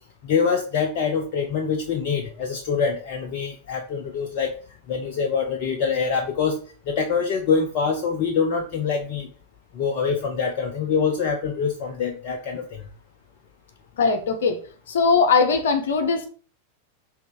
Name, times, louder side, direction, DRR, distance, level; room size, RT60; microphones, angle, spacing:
voice 1, 0.2-4.5 4.9-6.6 6.9-9.3 9.7-12.9, left 5 dB, 45° left, 3 dB, 0.8 m, -25 dB
voice 2, 14.0-14.6 14.9-16.3, left 4 dB, 60° left, 6 dB, 1.2 m, -20 dB
5.7 x 3.8 x 4.9 m, 0.40 s
figure-of-eight pair, 90°, 0 cm